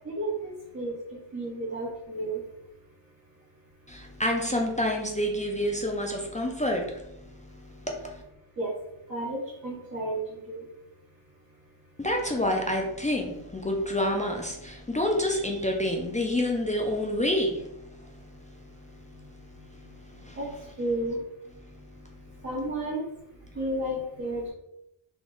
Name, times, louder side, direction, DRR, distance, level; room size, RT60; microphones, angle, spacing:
voice 1, 0.0-0.9 1.3-2.4 8.6-8.7 9.1-10.2 10.5-10.6 20.4-20.5 20.8-21.2 22.4-23.0 23.5-24.5, right 1 dB, 35° right, -8 dB, 1.2 m, -32 dB
voice 2, 3.9-7.3 7.5-8.2 12.0-18.1 19.7-20.4, left 1 dB, 15° left, 0 dB, 0.4 m, -28 dB
3.5 x 2.3 x 3.8 m, 0.84 s
wide cardioid pair, 115°, 49 cm